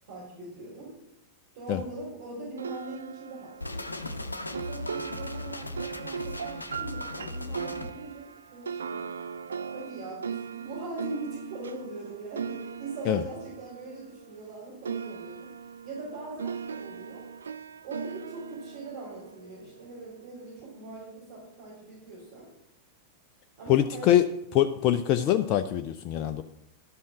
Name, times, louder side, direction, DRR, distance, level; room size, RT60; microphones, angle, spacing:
voice 1, 0.0-1.0 1.5-4.2 4.7-9.1 9.7-15.5 15.8-17.3 17.8-22.5 23.6-24.2, right 2 dB, 55° right, -7 dB, 3.8 m, -41 dB
sound 1, 2.6-14.5 14.8-20.1, right 7 dB, 70° right, 0.3 m, -39 dB
sound 2, 3.6-7.9, left 2 dB, 80° left, 0.6 m, -37 dB
voice 2, 23.7-24.2 24.5-26.4, left 12 dB, 40° left, 9 dB, 0.4 m, -23 dB
11.5 x 5.5 x 6.3 m, 0.82 s
figure-of-eight pair, 90°, 0 cm